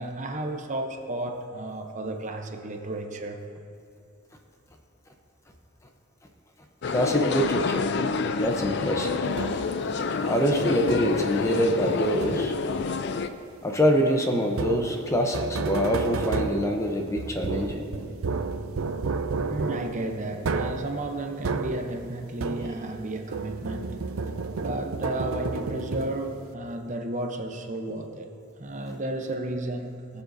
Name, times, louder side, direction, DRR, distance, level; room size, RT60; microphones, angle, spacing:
voice 1, 0.0-3.4 19.5-24.0 24.6-28.3 28.6-30.2, right 1 dB, 35° right, 4 dB, 0.7 m, -33 dB
sound 1, 6.8-13.3, left 4 dB, 55° left, 0.4 m, -28 dB
voice 2, 6.9-7.8 8.4-9.2 10.3-12.5 13.6-17.8, equal, 15° left, 2 dB, 0.7 m, -25 dB
sound 2, 9.4-9.9 10.9-11.3 12.2-12.8 14.5-23.0 23.3-26.5, right 4 dB, 80° right, 0.5 m, -31 dB
19.5 x 7.1 x 2.7 m, 2.8 s
head